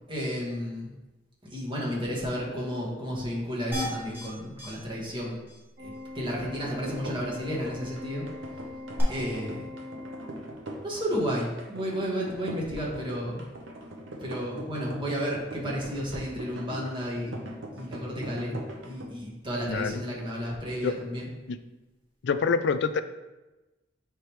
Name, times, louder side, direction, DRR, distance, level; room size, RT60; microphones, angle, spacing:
voice 1, 0.1-0.9 1.5-5.4 5.8-8.3 9.1-9.7 10.8-13.4 14.2-17.4 17.7-21.3, equal, 25° right, -4 dB, 1.7 m, -32 dB
sound 1, 3.7-4.3 4.6-4.7 5.0-5.1 5.5-5.6 9.0-9.1, left 1 dB, 10° right, 1.8 m, -33 dB
Organ, 5.8-10.8, left 2 dB, 60° right, 1.3 m, -42 dB
sound 2, 6.4-19.1, right 1 dB, 90° right, 0.9 m, -41 dB
voice 2, 19.7-20.0 20.8-21.0 21.5-21.6 22.2-23.0, left 5 dB, 65° left, 11 dB, 0.4 m, -26 dB
9.1 x 3.4 x 3.2 m, 1.1 s
head